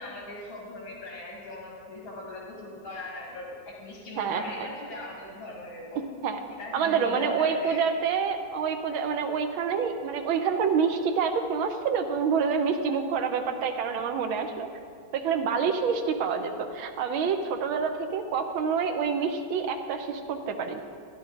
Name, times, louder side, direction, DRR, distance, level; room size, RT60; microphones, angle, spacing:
voice 1, 0.0-6.0 6.6-7.8, left 2 dB, 80° left, -2 dB, 2.4 m, -40 dB
voice 2, 6.7-14.7 15.1-20.8, right 6 dB, 80° right, 6 dB, 1.6 m, -27 dB
12.5 x 10.5 x 3.8 m, 2.2 s
omnidirectional pair, 2.2 m